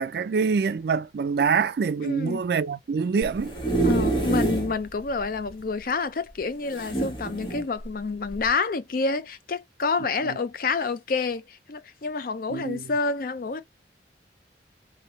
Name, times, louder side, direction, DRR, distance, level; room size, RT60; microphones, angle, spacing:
voice 1, 0.0-3.5 10.2-10.4 12.5-12.9, right 5 dB, 60° right, 0.3 m, -25 dB
voice 2, 2.0-2.4 3.8-13.6, left 4 dB, 50° left, 0.5 m, -28 dB
sound 1, 3.2-4.7 5.2-5.3 5.5-5.6 6.7-7.6 8.3-8.5, right 2 dB, 25° left, 1.6 m, -26 dB
3.2 x 2.7 x 4.1 m
head